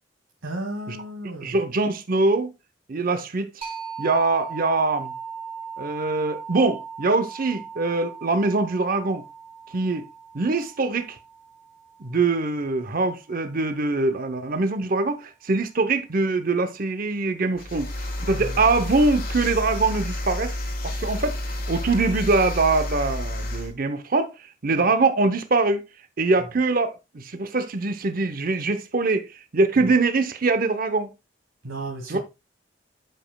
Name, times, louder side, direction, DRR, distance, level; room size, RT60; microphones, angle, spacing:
voice 1, 0.4-1.6 18.3-18.8 24.7-24.9 26.4-26.5 29.8-29.9 31.6-32.2, right 1 dB, 85° right, 1.3 m, -35 dB
voice 2, 1.4-2.5 2.9-3.5 4.0-5.1 5.8-9.2 9.7-10.0 10.3-11.2 12.0-20.5 20.8-21.4 21.7-24.3 24.6-25.8 26.2-31.1 32.1-32.2, right 3 dB, 45° right, 0.7 m, -23 dB
sound 1, 3.6-13.0, right 6 dB, 30° right, 2.7 m, -39 dB
sound 2, 17.6-23.7, left 1 dB, 50° left, 1.5 m, -30 dB
12.0 x 5.1 x 2.2 m
head